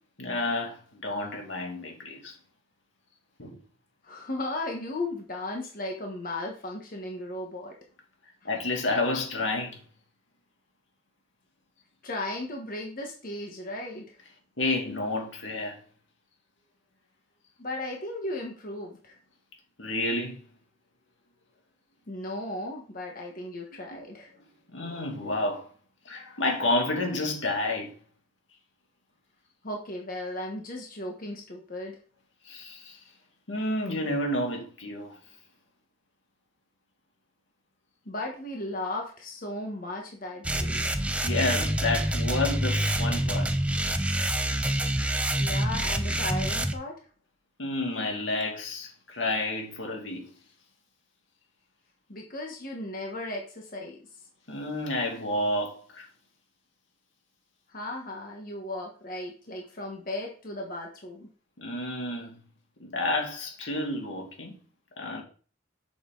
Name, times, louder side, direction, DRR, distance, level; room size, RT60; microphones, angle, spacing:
voice 1, 0.2-2.4 3.4-3.6 8.4-9.8 14.6-15.8 19.8-20.4 23.9-24.0 24.7-25.7 26.0-27.9 32.4-33.0 33.5-35.2 41.2-43.5 47.6-50.2 54.5-56.1 61.6-62.4 62.8-64.5 65.0-65.2, left 2 dB, 85° left, 2.4 m, -30 dB
voice 2, 4.0-7.7 12.0-14.2 17.6-19.2 22.1-24.3 29.6-32.0 38.0-40.9 45.4-46.9 52.1-54.0 57.7-61.3, left 1 dB, 50° left, 1.4 m, -36 dB
sound 1, 40.4-46.7, right 1 dB, 5° right, 0.7 m, -27 dB
8.1 x 6.5 x 3.9 m
head